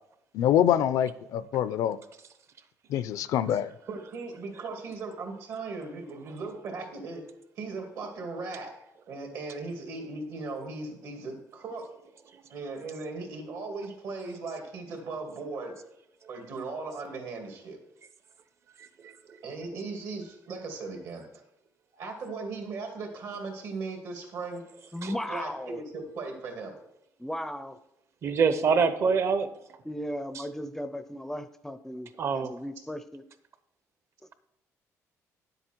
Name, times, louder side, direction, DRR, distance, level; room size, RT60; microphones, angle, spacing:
voice 1, 0.3-2.0 2.9-3.7, left 10 dB, 80° left, 0.5 m, -25 dB
voice 2, 3.9-7.2 7.6-8.7 9.1-11.9 12.5-15.8 16.3-17.8 19.4-21.2 21.9-24.6 25.0-26.8, right 3 dB, 70° right, 2.4 m, -38 dB
voice 3, 24.9-25.8 27.2-27.8 29.8-33.2, equal, 5° left, 0.5 m, -36 dB
voice 4, 28.2-29.5 32.2-32.5, right 5 dB, 50° right, 0.9 m, -24 dB
10.0 x 7.9 x 4.5 m
cardioid pair, 120°, 6 cm